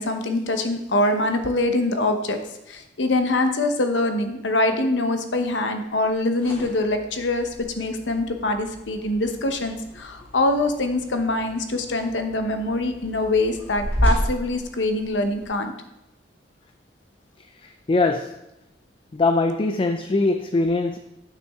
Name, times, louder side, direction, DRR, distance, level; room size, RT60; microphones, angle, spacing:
voice 1, 0.0-2.4 2.7-15.7, left 2 dB, 90° left, 7 dB, 0.9 m, -24 dB
sound 1, 6.1-15.5, equal, 10° left, 3.0 m, -32 dB
voice 2, 17.9-18.3 19.1-21.0, left 3 dB, 30° left, 7 dB, 0.4 m, -21 dB
9.4 x 6.0 x 3.6 m, 0.92 s
head